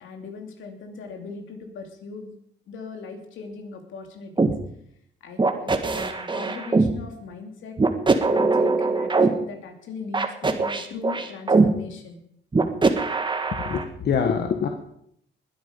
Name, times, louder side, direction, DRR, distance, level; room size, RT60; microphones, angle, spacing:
voice 1, 0.0-2.3 2.7-4.5 5.2-7.8 8.3-12.2, left 4 dB, 80° left, 4 dB, 2.8 m, -39 dB
sound 1, 4.4-4.5 5.4-6.9 7.8-9.3 10.1-11.7 12.5-13.8, right 3 dB, 25° right, 1.5 m, -21 dB
voice 2, 13.6-14.7, left 6 dB, 55° left, 5 dB, 1.4 m, -24 dB
20.5 x 8.7 x 5.3 m, 0.72 s
cardioid pair, 90°, 20 cm